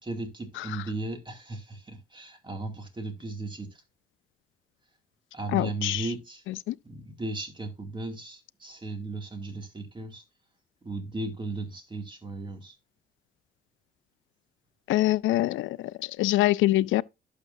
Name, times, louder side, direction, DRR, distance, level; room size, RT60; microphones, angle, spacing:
voice 1, 0.0-3.8 5.3-6.4 6.8-10.2 10.8-12.7, right 2 dB, 25° right, 2.4 m, -36 dB
voice 2, 5.5-6.0 6.7-6.8 14.9-15.8 16.2-17.0, left 16 dB, 80° left, 0.4 m, -24 dB
11.5 x 6.8 x 2.6 m
cardioid pair, 90°, 20 cm